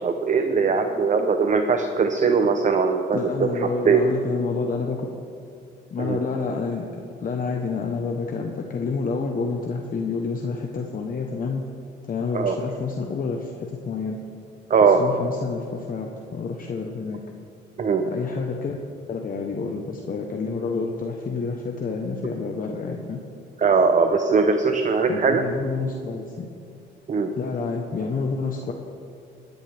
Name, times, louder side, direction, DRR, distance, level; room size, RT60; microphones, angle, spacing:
voice 1, 0.0-4.1 6.0-6.2 12.3-12.6 14.7-15.0 17.8-18.1 23.6-25.4 27.1-27.3, right 5 dB, 40° right, 6 dB, 0.8 m, -20 dB
voice 2, 3.1-5.1 5.9-6.9 7.2-11.6 12.1-14.2 14.8-17.2 18.0-18.8 19.1-23.2 25.1-26.5 27.4-28.7, left 4 dB, 45° left, 2 dB, 1.1 m, -28 dB
17.5 x 10.5 x 3.5 m, 2.4 s
cardioid pair, 90°, 20 cm